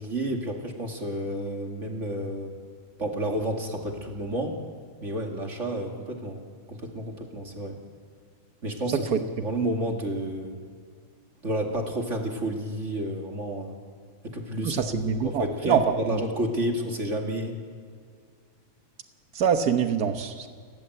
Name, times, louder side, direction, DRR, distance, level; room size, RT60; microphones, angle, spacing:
voice 1, 0.0-2.5 3.0-4.6 5.0-6.4 6.7-7.8 8.6-9.1 9.4-10.6 11.4-13.8 14.2-14.8 15.2-17.6, right 1 dB, 25° right, 2 dB, 2.3 m, -30 dB
voice 2, 14.6-15.8 16.1-16.2 19.3-20.5, right 7 dB, 80° right, 7 dB, 0.8 m, -25 dB
29.5 x 14.0 x 8.0 m, 2.1 s
omnidirectional pair, 3.3 m